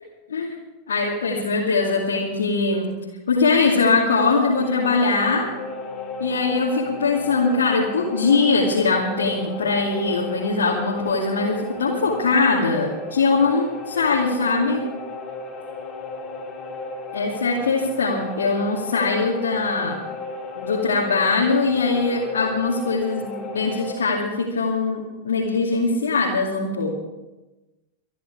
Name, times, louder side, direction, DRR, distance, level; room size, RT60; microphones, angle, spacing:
voice 1, 0.9-2.9 3.3-5.5 6.2-14.8 17.1-20.0 20.6-26.9, left 4 dB, 65° left, -4 dB, 2.4 m, -21 dB
sound 1, 2.3-12.3, left 2 dB, 20° right, 5.7 m, -47 dB
sound 2, 4.5-23.9, left 3 dB, 20° left, 3.2 m, -34 dB
24.5 x 11.0 x 4.8 m, 1.1 s
figure-of-eight pair, 90°, 0 cm